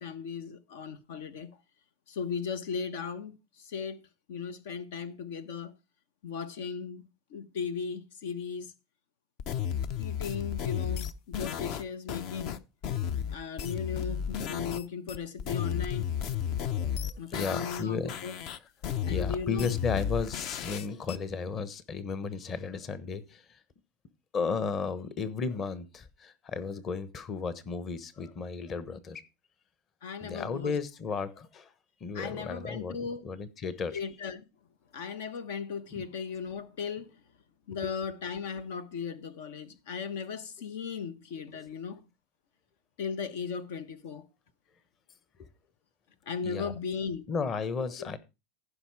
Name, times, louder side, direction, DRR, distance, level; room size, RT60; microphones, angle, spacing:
voice 1, 0.0-1.5 2.1-4.0 4.3-5.8 6.2-8.7 10.0-12.6 13.3-16.1 17.2-18.3 19.0-19.8 30.0-30.8 32.1-33.2 33.9-34.5 34.9-37.2 37.7-42.0 43.0-44.3 46.3-47.2 48.0-48.2, left 6 dB, 80° left, 1.1 m, -37 dB
sound 1, 9.4-14.8 15.1-17.8 18.1-21.2, left 9 dB, 55° left, 0.8 m, -33 dB
voice 2, 17.3-18.1 19.0-23.4 24.3-29.2 30.2-31.7 32.0-33.0 33.2-34.0 37.8-37.9 46.4-46.7 47.3-48.2, left 5 dB, 30° left, 1.1 m, -34 dB
15.0 x 5.7 x 4.8 m
supercardioid pair, 135°, 0 cm